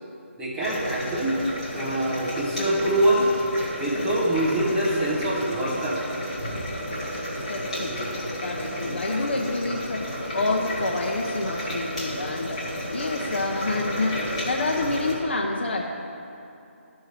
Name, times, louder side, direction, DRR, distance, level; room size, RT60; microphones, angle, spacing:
voice 1, 0.4-1.4 1.7-3.3 3.8-6.0 7.9-8.3 8.8-9.0, right 1 dB, 5° right, -8 dB, 0.6 m, -25 dB
sound 1, 0.6-15.1, equal, 25° left, 1.9 m, -32 dB
voice 2, 7.4-12.6 12.9-15.9, left 2 dB, 55° left, 0 dB, 0.7 m, -28 dB
13.0 x 6.4 x 3.2 m, 2.7 s
hypercardioid pair, 175°, 7 cm